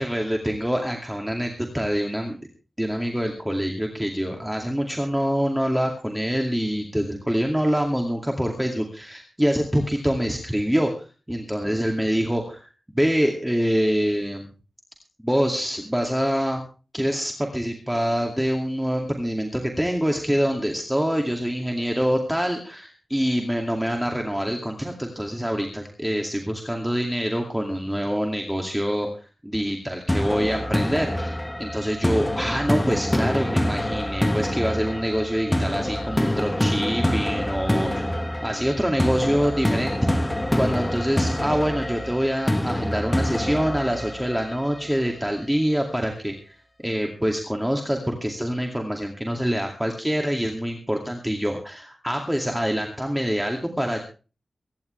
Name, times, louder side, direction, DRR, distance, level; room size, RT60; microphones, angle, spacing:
voice 1, 0.0-2.4 2.8-12.7 12.9-14.5 15.2-16.7 16.9-29.1 29.4-38.1 38.4-39.9 40.6-46.6 46.8-54.0, equal, 5° right, 2 dB, 2.3 m, -25 dB
sound 1, 30.1-45.0, left 1 dB, 10° left, 1.0 m, -26 dB
24.0 x 10.5 x 3.3 m, 0.35 s
wide cardioid pair, 120°, 0 cm